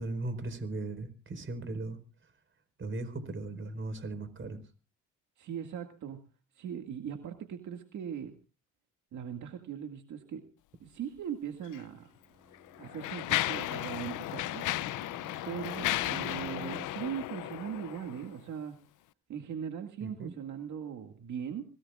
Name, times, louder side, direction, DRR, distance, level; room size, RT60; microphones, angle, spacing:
voice 1, 0.0-2.3 2.8-4.6 20.0-20.3, right 2 dB, 40° right, 10 dB, 4.6 m, -38 dB
voice 2, 5.4-6.2 6.6-8.4 9.1-10.4 10.8-12.1 12.8-14.6 15.5-18.7 19.3-21.6, right 8 dB, 75° right, 5 dB, 2.0 m, -39 dB
Mechanisms, 11.6-11.8 12.5-18.3, left 16 dB, 80° left, 0.6 m, -34 dB
Fixed-wing aircraft airplane, 12.0-16.9, right 3 dB, 20° right, 1.0 m, -49 dB
25.0 x 18.0 x 2.4 m, 0.35 s
cardioid pair, 90°, 30 cm